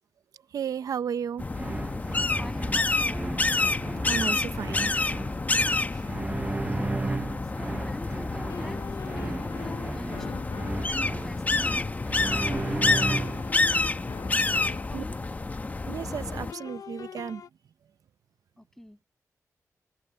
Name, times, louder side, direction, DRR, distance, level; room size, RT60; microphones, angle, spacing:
voice 1, 0.5-1.4 4.0-4.9 5.9-6.1 14.9-15.0 15.9-17.4, right 7 dB, 85° right, 0.7 m, -33 dB
sound 1, 1.4-16.5, left 3 dB, 25° left, 0.9 m, -28 dB
sound 2, 1.5-13.6, right 3 dB, 20° right, 0.6 m, -35 dB
voice 2, 2.4-3.2 7.5-8.8 9.1-10.6 10.9-11.9 12.2-13.1 14.2-15.2 18.6-19.0, left 1 dB, 5° left, 7.2 m, -43 dB
sound 3, 8.4-11.1 12.4-15.1 16.4-17.5, left 8 dB, 75° left, 0.7 m, -43 dB
wide cardioid pair, 110°, 6 cm